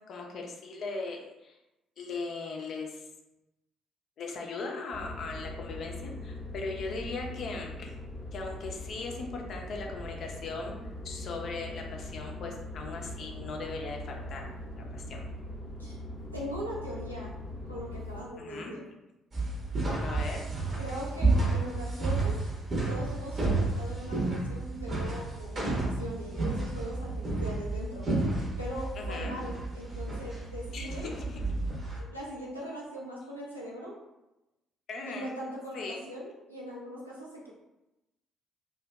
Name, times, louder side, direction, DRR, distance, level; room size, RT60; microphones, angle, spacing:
voice 1, 0.1-1.6 2.0-3.0 4.2-7.9 8.3-10.8 11.0-14.4 14.8-15.2 18.4-18.7 20.0-20.4 29.0-29.3 30.7-31.4 34.9-35.3 35.7-36.1, left 3 dB, 50° left, 1 dB, 0.4 m, -38 dB
sound 1, 4.9-18.2, left 1 dB, 15° left, 0.7 m, -41 dB
voice 2, 16.3-17.3 17.7-18.9 20.8-22.4 22.9-28.1 28.6-31.1 31.9-33.9 35.1-37.5, equal, 90° right, -6 dB, 0.4 m, -40 dB
sound 2, 19.3-32.0, right 2 dB, 35° right, 0.7 m, -31 dB
2.6 x 2.1 x 2.2 m, 0.97 s
figure-of-eight pair, 45°, 0 cm